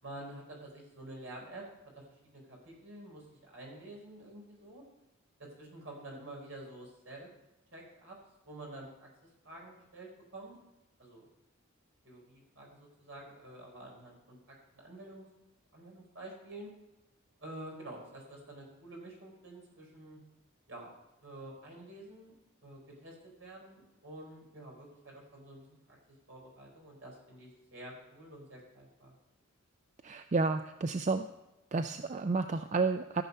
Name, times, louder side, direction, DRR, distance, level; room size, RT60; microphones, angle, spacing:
voice 1, 0.0-1.7 1.9-4.8 5.4-7.3 7.7-8.2 8.5-9.1 9.4-10.5 11.0-11.3 12.0-15.3 15.7-16.7 17.4-20.2 20.7-20.9 21.2-22.3 22.6-26.0 26.3-29.1, right 1 dB, 65° right, -2 dB, 4.4 m, -49 dB
voice 2, 30.0-31.3 31.7-33.2, right 4 dB, 35° right, 8 dB, 0.3 m, -31 dB
14.5 x 7.1 x 5.5 m, 0.94 s
head